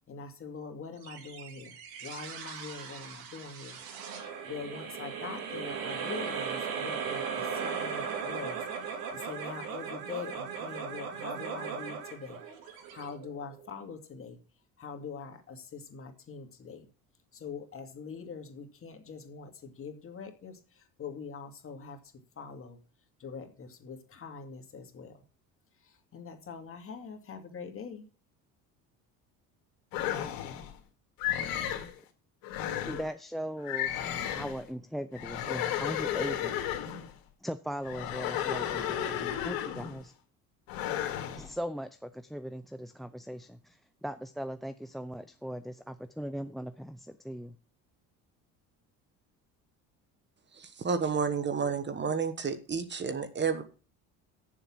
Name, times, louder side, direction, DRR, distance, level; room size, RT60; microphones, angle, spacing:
voice 1, 0.1-3.8 4.4-14.4 14.8-16.9 17.3-22.0 22.4-22.8 23.2-25.2 25.8-28.0, left 5 dB, 40° left, 5 dB, 2.3 m, -43 dB
sound 1, 1.0-13.7, right 6 dB, 80° right, 2.6 m, -38 dB
sound 2, 29.9-30.7 31.2-31.9 32.4-33.1 33.6-34.6 35.1-37.1 37.8-40.0 40.7-41.5, left 10 dB, 75° left, 2.1 m, -33 dB
voice 2, 32.9-34.0 34.3-36.6 37.4-40.1 41.3-47.5, equal, ahead, 14 dB, 0.4 m, -39 dB
voice 3, 50.5-53.6, right 6 dB, 30° right, 11 dB, 1.3 m, -31 dB
8.0 x 7.3 x 7.3 m, 0.37 s
cardioid pair, 105°, 35 cm